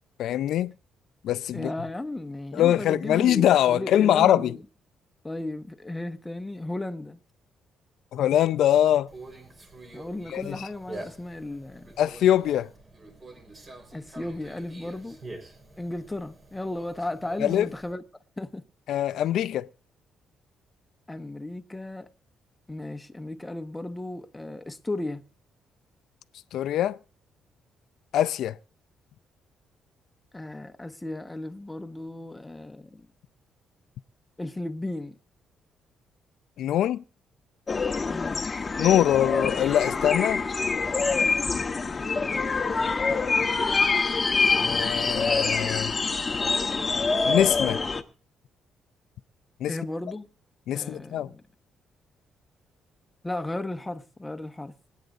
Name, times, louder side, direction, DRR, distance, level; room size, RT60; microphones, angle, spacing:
voice 1, 0.2-0.7 1.2-1.7 2.5-4.6 8.1-9.1 10.3-10.7 12.0-12.7 17.4-17.7 18.9-19.7 26.5-27.0 28.1-28.6 36.6-37.0 38.8-40.4 44.6-45.9 47.3-47.8 49.6-49.8 50.7-51.3, left 11 dB, 80° left, 0.5 m, -23 dB
voice 2, 1.5-4.6 5.2-7.2 9.9-11.9 13.9-15.2 15.8-18.0 18.4-18.6 21.1-22.1 22.7-25.2 30.3-33.1 34.4-35.2 38.1-38.5 49.7-50.3 50.7-51.4 53.2-54.7, left 2 dB, 15° left, 1.1 m, -35 dB
Conversation, 9.1-17.9, right 2 dB, 35° right, 4.1 m, -46 dB
sound 1, 37.7-48.0, left 4 dB, 30° left, 1.1 m, -25 dB
27.0 x 9.4 x 2.5 m
cardioid pair, 90°, 0 cm